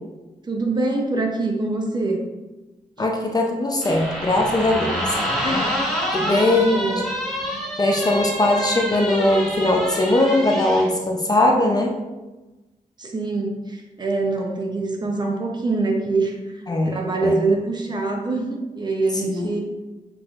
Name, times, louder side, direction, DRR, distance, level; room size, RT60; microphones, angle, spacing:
voice 1, 0.4-2.3 6.2-7.0 7.5-7.6 13.0-19.6, right 3 dB, 30° right, 1 dB, 0.6 m, -24 dB
voice 2, 3.0-5.8 6.1-7.0 7.8-12.0 16.7-17.4 19.2-19.5, left 1 dB, 25° left, 1 dB, 0.4 m, -20 dB
sound 1, 3.8-10.9, equal, ahead, 0.9 m, -27 dB
6.0 x 3.2 x 2.4 m, 1.1 s
wide cardioid pair, 180°, 15 cm